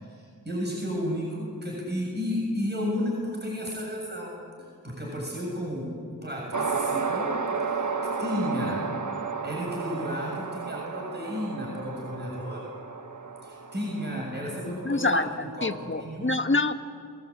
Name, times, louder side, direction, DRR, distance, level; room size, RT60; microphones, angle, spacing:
voice 1, 0.0-4.4 4.8-7.3 7.7-9.0 9.4-12.7 13.4-16.3, equal, 30° right, -2 dB, 7.2 m, -33 dB
sound 1, 6.5-15.1, right 5 dB, 55° right, 1.5 m, -32 dB
voice 2, 14.7-16.7, left 2 dB, 30° left, 7 dB, 1.6 m, -26 dB
28.0 x 19.5 x 8.7 m, 2.2 s
cardioid pair, 40°, 36 cm